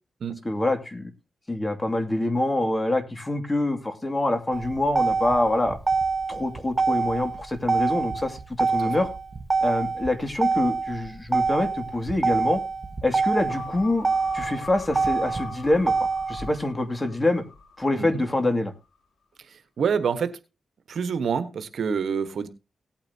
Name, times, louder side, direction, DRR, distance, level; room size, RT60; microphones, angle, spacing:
voice 1, 0.4-1.1 1.5-5.8 6.3-9.1 9.6-12.6 13.0-14.1 14.3-17.4 17.8-18.7, left 1 dB, 25° left, 7 dB, 2.4 m, -25 dB
Motor vehicle (road), 4.5-16.5, right 4 dB, 40° right, 1.4 m, -26 dB
sound 1, 13.5-18.2 18.5-18.6, left 5 dB, 85° left, 3.0 m, -43 dB
voice 2, 19.4-20.4 20.9-22.5, right 6 dB, 75° right, 11 dB, 1.3 m, -27 dB
18.0 x 8.9 x 2.9 m, 0.27 s
cardioid pair, 75°, 0 cm